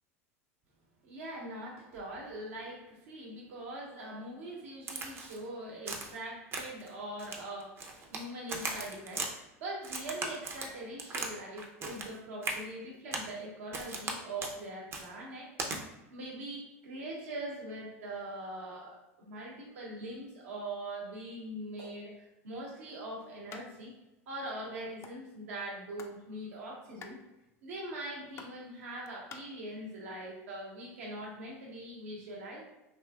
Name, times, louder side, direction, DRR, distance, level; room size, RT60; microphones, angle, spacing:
voice 1, 1.0-15.5 16.1-23.9 24.3-27.2 27.6-32.6, right 1 dB, 75° right, -2 dB, 1.0 m, -42 dB
Crack, 4.9-5.4 5.9-6.2 6.5-6.9 7.2-8.2 8.5-9.3 9.8-11.3 11.6-12.1 12.4-12.6 13.1-13.3 13.7-14.1 14.4-14.6 14.9-15.1 15.6-15.8, right 3 dB, 30° right, 0.6 m, -38 dB
sound 1, 23.5-23.7 24.0-24.1 24.3-25.2 25.6-26.2 26.5-29.4, left 6 dB, 35° left, 0.4 m, -49 dB
3.2 x 2.6 x 2.3 m, 0.95 s
hypercardioid pair, 95°, 8 cm